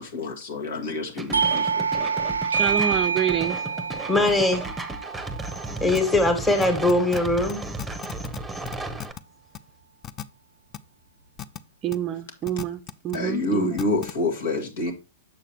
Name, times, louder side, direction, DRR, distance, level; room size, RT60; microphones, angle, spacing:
voice 1, 0.0-2.1 13.1-14.9, left 2 dB, 60° left, 1.8 m, -28 dB
sound 1, 1.2-9.1, right 2 dB, 5° right, 1.0 m, -34 dB
Doorbell, 1.3-6.6, right 5 dB, 90° right, 0.5 m, -27 dB
voice 2, 2.5-3.6 11.8-12.8 13.0-13.8, right 10 dB, 30° right, 0.5 m, -27 dB
voice 3, 4.1-4.6 5.8-7.6, left 2 dB, 10° left, 1.7 m, -21 dB
sound 2, 5.9-6.0 6.6-7.2 7.5-7.6 7.8-8.4 8.6-9.2 9.5-9.6 10.0-10.2 10.7-10.8 11.4-11.6 11.9-12.0 12.5-13.2 13.8-14.1, left 10 dB, 30° left, 0.5 m, -34 dB
7.1 x 6.6 x 3.0 m
hypercardioid pair, 110°, 0 cm